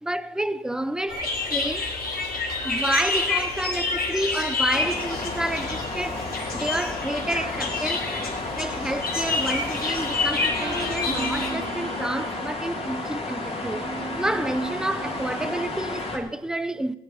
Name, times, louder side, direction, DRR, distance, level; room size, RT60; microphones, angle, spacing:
voice 1, 0.0-1.9 2.6-8.1 8.5-13.9 14.2-17.0, right 1 dB, 5° right, 0.6 m, -29 dB
sound 1, 1.1-11.5, left 3 dB, 50° left, 4.5 m, -28 dB
sound 2, 4.7-16.2, left 2 dB, 30° left, 3.3 m, -32 dB
sound 3, 10.6-12.5 13.8-15.7, right 3 dB, 20° right, 2.0 m, -36 dB
16.5 x 10.0 x 5.6 m
cardioid pair, 90°, 20 cm